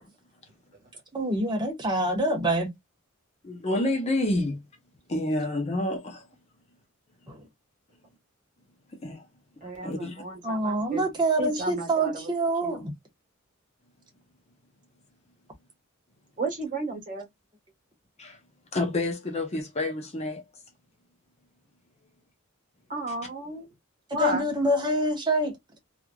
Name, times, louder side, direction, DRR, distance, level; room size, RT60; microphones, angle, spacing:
voice 1, 1.1-2.7 7.3-7.5 10.4-12.9 24.1-25.8, right 1 dB, 20° right, 1.0 m, -26 dB
voice 2, 3.4-4.6 5.1-6.2 8.9-9.2 9.8-10.2 18.2-18.4 18.7-20.4, left 1 dB, 30° left, 0.6 m, -28 dB
voice 3, 9.6-11.0 11.4-12.2 12.6-12.8 16.4-17.3 22.9-23.7 24.1-24.5, right 3 dB, 40° right, 1.4 m, -33 dB
3.0 x 2.5 x 2.2 m
head